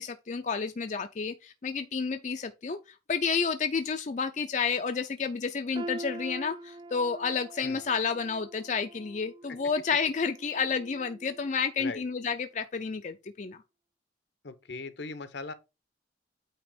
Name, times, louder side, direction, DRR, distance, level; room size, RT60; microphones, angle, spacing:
voice 1, 0.0-2.8 3.1-13.6, left 5 dB, 40° left, 0.4 m, -30 dB
sound 1, 5.8-11.7 12.1-12.3 13.1-13.2, right 2 dB, 25° right, 0.3 m, -45 dB
voice 2, 14.4-15.5, left 3 dB, 70° left, 0.8 m, -39 dB
8.8 x 2.9 x 4.9 m
head